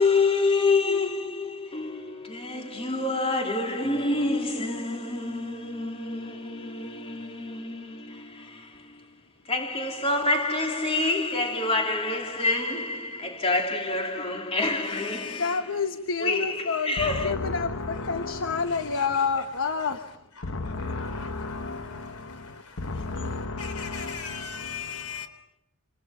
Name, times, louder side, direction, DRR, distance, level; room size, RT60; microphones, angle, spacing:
voice 1, 0.0-9.0 9.4-15.4 16.2-17.3, left 3 dB, 25° left, 3.0 m, -27 dB
voice 2, 14.8-15.7 18.7-19.3 19.8-19.9 20.4-25.3, left 6 dB, 85° left, 4.1 m, -41 dB
voice 3, 15.4-25.1, left 4 dB, 60° left, 1.2 m, -30 dB
29.0 x 27.5 x 5.7 m
head